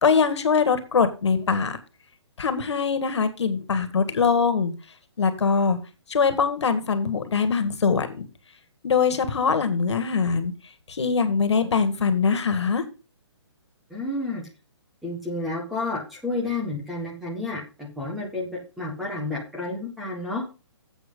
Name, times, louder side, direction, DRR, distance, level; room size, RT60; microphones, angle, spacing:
voice 1, 0.0-1.8 2.4-4.7 5.2-5.8 6.1-8.3 8.8-10.5 10.9-12.8, left 5 dB, 70° left, 11 dB, 1.9 m, -22 dB
voice 2, 13.9-14.4 15.0-20.4, left 2 dB, ahead, -2 dB, 1.3 m, -30 dB
10.0 x 7.9 x 3.8 m, 0.31 s
hypercardioid pair, 175°, 15 cm